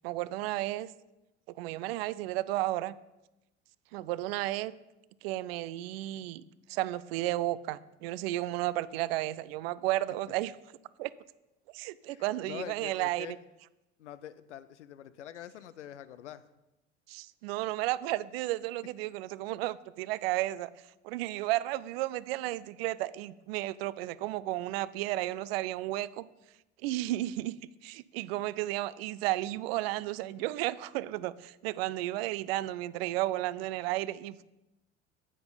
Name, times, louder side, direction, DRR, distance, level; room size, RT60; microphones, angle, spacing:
voice 1, 0.0-0.9 1.6-3.0 3.9-4.7 5.2-6.4 6.7-10.5 11.0-11.1 11.7-13.3 17.1-20.7 21.0-26.2 26.8-27.6 27.8-34.4, right 16 dB, 55° right, 18 dB, 0.5 m, -33 dB
voice 2, 12.1-13.4 14.0-16.4, left 11 dB, 75° left, 15 dB, 0.6 m, -45 dB
10.0 x 8.5 x 3.9 m, 0.97 s
figure-of-eight pair, 65°, 36 cm